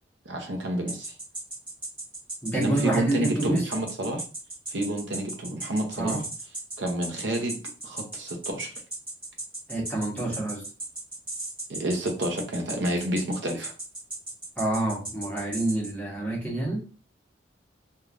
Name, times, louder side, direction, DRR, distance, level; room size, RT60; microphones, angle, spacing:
voice 1, 0.3-1.1 2.5-4.2 4.7-6.2 6.8-8.7 11.7-13.7, right 1 dB, 75° right, 3 dB, 0.6 m, -29 dB
sound 1, 0.9-15.9, right 2 dB, 25° right, 1.3 m, -36 dB
voice 2, 2.4-3.6 6.0-6.2 9.7-10.6 14.6-16.8, right 2 dB, 10° left, -5 dB, 0.9 m, -27 dB
3.1 x 2.3 x 2.4 m, 0.36 s
head